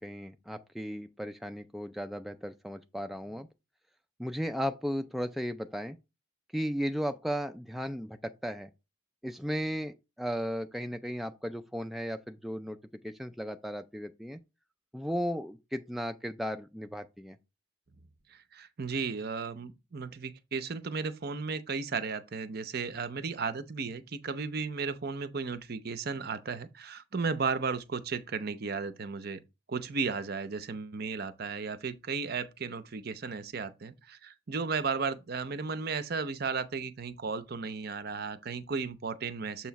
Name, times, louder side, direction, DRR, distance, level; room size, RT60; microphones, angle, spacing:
voice 1, 0.0-3.5 4.2-6.0 6.5-8.7 9.2-12.8 13.0-14.4 14.9-17.4, equal, ahead, 0.3 m, -35 dB
voice 2, 18.3-29.4 29.7-39.7, right 5 dB, 50° right, 0.6 m, -35 dB
7.1 x 3.1 x 5.7 m
head